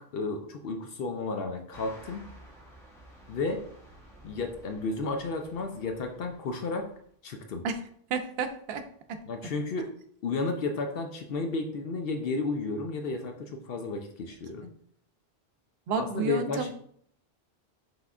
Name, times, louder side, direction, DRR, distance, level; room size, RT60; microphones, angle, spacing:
voice 1, 0.0-2.2 3.3-3.6 4.2-6.9 7.2-7.6 9.3-9.9 10.2-14.7 16.0-16.7, left 3 dB, 65° left, 5 dB, 0.7 m, -32 dB
sound 1, 1.7-7.1, right 1 dB, 5° left, 0.9 m, -53 dB
voice 2, 8.1-8.8 9.1-9.2 9.8-9.9 15.9-16.7, right 5 dB, 70° right, 8 dB, 0.8 m, -31 dB
5.7 x 3.5 x 2.4 m, 0.63 s
omnidirectional pair, 1.1 m